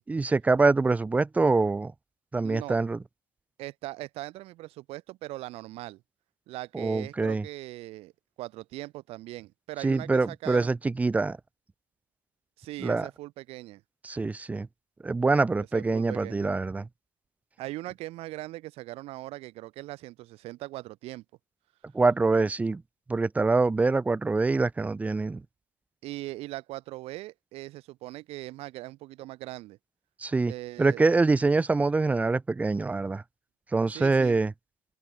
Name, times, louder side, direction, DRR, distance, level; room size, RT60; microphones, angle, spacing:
voice 1, 0.1-1.9 2.3-3.0 6.7-7.4 9.8-11.4 12.8-13.1 14.0-14.7 15.0-16.9 21.9-22.8 23.1-25.4 30.2-30.5 30.8-33.2 33.7-34.5, right 3 dB, 10° right, 0.7 m, -25 dB
voice 2, 2.4-2.8 3.6-6.0 6.5-8.1 8.4-10.7 12.6-13.8 15.6-16.5 17.6-21.2 26.0-29.8 30.5-31.0 33.9-34.4, right 18 dB, 60° right, 4.3 m, -40 dB
open air
supercardioid pair, 105°, 12 cm